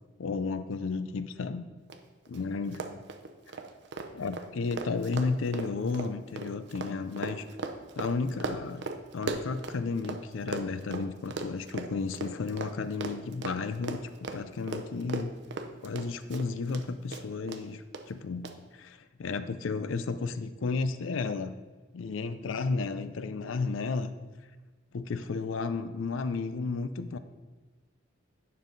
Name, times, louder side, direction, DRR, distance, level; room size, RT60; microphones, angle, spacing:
voice 1, 0.2-1.7 2.3-2.9 4.1-7.4 8.0-8.8 9.1-14.0 14.3-15.3 15.8-21.5 21.9-24.1 24.9-27.2, left 4 dB, 75° left, 12 dB, 0.5 m, -33 dB
Run, 1.9-2.0 2.3-2.4 2.7-10.2 10.5-16.8 17.1-17.6 17.9-18.0 18.4-18.5, right 3 dB, 60° right, 0.6 m, -37 dB
9.6 x 5.4 x 3.9 m, 1.3 s
head